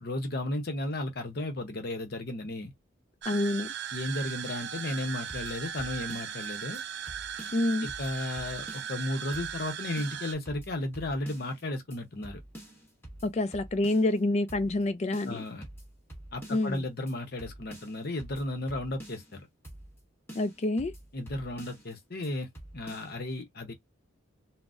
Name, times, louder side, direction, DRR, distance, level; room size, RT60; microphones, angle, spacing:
voice 1, 0.0-2.7 3.9-6.8 7.8-12.4 15.3-15.7 16.3-19.5 21.1-23.7, left 1 dB, 50° left, 0.8 m, -34 dB
sound 1, 3.2-10.3, right 9 dB, 55° right, 0.4 m, -38 dB
voice 2, 3.3-3.7 7.5-7.9 13.2-15.4 16.5-16.8 20.3-20.9, left 2 dB, 30° left, 0.3 m, -27 dB
sound 2, 4.9-6.5 6.7-6.8 7.1-9.0 9.3-9.7 10.0-11.6 11.9-12.0 12.2-14.2 14.5-14.8 15.1-16.8 17.1-17.2 17.4-19.4 19.6-20.0 20.3-21.9 22.2-22.3 22.5-23.1, right 1 dB, 10° left, 1.1 m, -47 dB
3.8 x 2.0 x 2.4 m
head